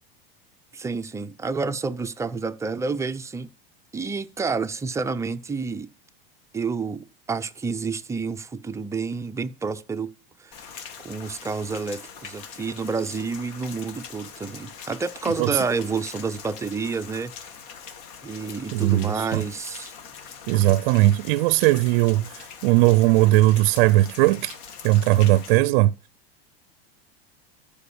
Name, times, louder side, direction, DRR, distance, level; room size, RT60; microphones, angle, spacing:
voice 1, 0.7-3.5 3.9-5.9 6.5-10.1 10.4-10.6 11.0-17.3 18.2-19.9, right 4 dB, 10° right, 0.5 m, -29 dB
Rain, 10.5-25.6, left 6 dB, 60° left, 2.1 m, -42 dB
voice 2, 18.7-19.4 20.5-24.6 24.8-25.9, right 17 dB, 60° right, 0.5 m, -19 dB
13.0 x 5.2 x 7.0 m
supercardioid pair, 145°, 30 cm